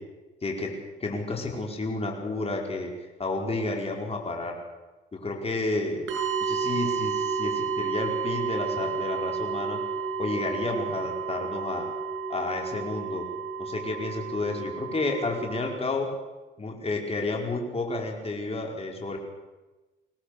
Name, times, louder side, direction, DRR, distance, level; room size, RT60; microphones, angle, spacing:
voice 1, 0.4-0.7 1.0-2.9 3.2-4.6 5.1-6.0 6.4-9.8 10.2-11.9 12.3-13.2 13.6-16.1 16.6-19.2, left 2 dB, 30° left, 1 dB, 5.0 m, -31 dB
sound 1, 6.1-15.7, right 5 dB, 75° right, 6.7 m, -31 dB
24.0 x 18.0 x 6.8 m, 1.1 s
cardioid pair, 90°, 20 cm